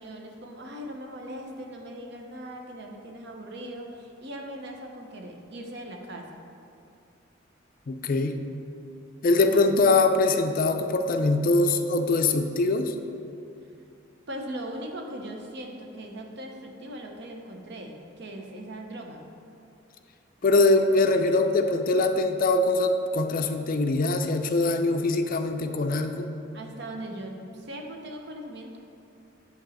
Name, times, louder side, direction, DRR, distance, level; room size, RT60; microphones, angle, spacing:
voice 1, 0.0-6.4 14.3-19.3 26.5-28.8, right 1 dB, 55° right, 2 dB, 0.8 m, -39 dB
voice 2, 7.9-8.4 9.2-12.9 20.4-26.3, left 2 dB, 45° left, 6 dB, 0.4 m, -23 dB
8.7 x 3.0 x 6.3 m, 2.5 s
head